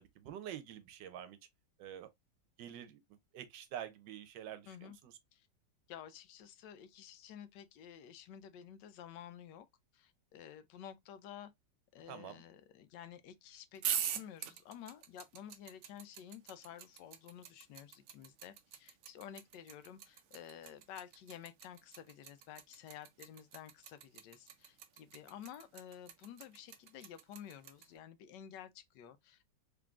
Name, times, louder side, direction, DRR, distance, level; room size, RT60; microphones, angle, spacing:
voice 1, 0.0-1.4 1.8-2.1 2.6-3.0 3.3-5.1 12.1-12.4, right 10 dB, 85° right, 1.3 m, -47 dB
voice 2, 4.7-5.0 5.3-5.5 5.9-9.7 9.9-11.5 11.9-29.5, left 9 dB, 80° left, 1.2 m, -52 dB
sound 1, 13.8-27.9, right 9 dB, 70° right, 0.8 m, -42 dB
3.7 x 3.3 x 2.3 m
omnidirectional pair, 1.9 m